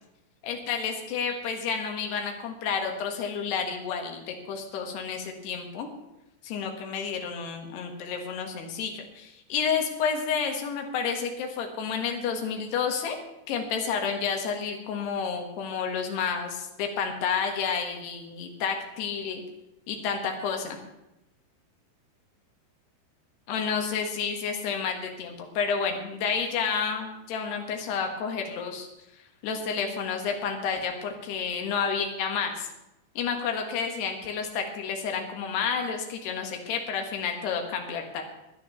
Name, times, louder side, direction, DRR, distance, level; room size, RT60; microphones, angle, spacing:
voice 1, 0.4-5.9 6.4-13.2 13.5-19.4 19.9-20.8 23.5-28.9 29.4-32.7 33.2-38.2, left 6 dB, 85° left, 3 dB, 3.7 m, -30 dB
14.0 x 10.0 x 7.0 m, 0.91 s
omnidirectional pair, 4.6 m